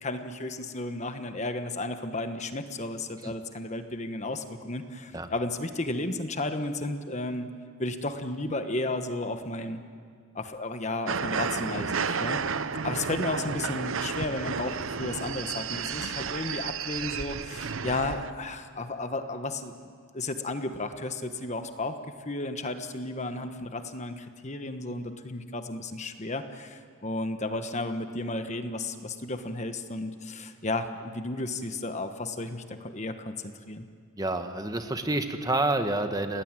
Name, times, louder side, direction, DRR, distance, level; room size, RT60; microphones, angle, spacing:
voice 1, 0.0-7.5 7.8-9.8 10.3-12.6 12.8-19.9 20.1-33.9, left 2 dB, 35° left, 8 dB, 1.3 m, -33 dB
sound 1, 11.1-18.3, right 5 dB, 70° right, 0.8 m, -32 dB
voice 2, 34.2-36.4, right 2 dB, 20° right, 7 dB, 1.3 m, -28 dB
29.0 x 19.0 x 9.1 m, 2.2 s
head